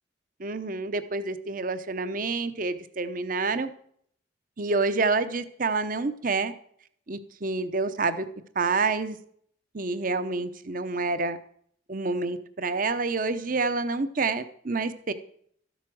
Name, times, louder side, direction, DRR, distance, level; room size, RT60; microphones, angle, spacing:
voice 1, 0.4-3.7 4.6-6.5 7.1-8.2 8.5-9.2 9.7-11.4 11.9-15.1, right 3 dB, 45° right, 12 dB, 0.8 m, -28 dB
13.5 x 8.1 x 6.2 m, 0.63 s
head